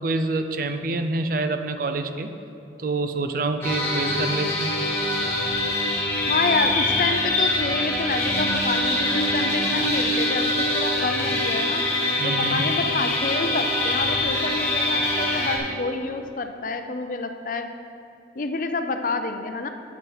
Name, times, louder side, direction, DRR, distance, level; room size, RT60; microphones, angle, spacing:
voice 1, 0.0-2.3 2.8-4.7 12.2-12.6, right 3 dB, 50° right, 8 dB, 0.5 m, -26 dB
sound 1, 3.6-15.6, left 1 dB, 15° left, 1.8 m, -24 dB
voice 2, 6.3-11.8 12.2-17.7 18.4-19.7, left 3 dB, 50° left, 7 dB, 0.5 m, -28 dB
9.2 x 7.9 x 4.7 m, 2.8 s
head